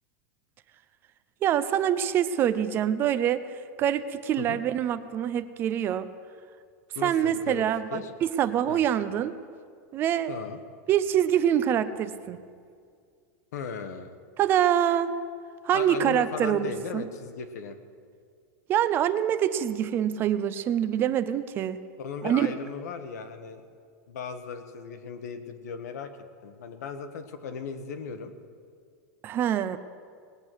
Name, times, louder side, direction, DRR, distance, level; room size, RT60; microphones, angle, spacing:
voice 1, 1.4-6.1 7.0-9.4 9.9-10.3 10.9-12.4 14.4-15.1 15.6-17.1 18.7-21.8 22.2-22.5 29.2-29.8, right 10 dB, 25° right, 13 dB, 0.5 m, -25 dB
voice 2, 6.9-7.6 7.9-8.1 8.7-8.8 10.3-10.6 13.5-14.1 15.7-17.8 22.0-23.6 24.1-26.1 26.4-28.3, left 6 dB, 85° left, 8 dB, 1.3 m, -37 dB
19.5 x 8.4 x 6.1 m, 2.2 s
supercardioid pair, 160°, 9 cm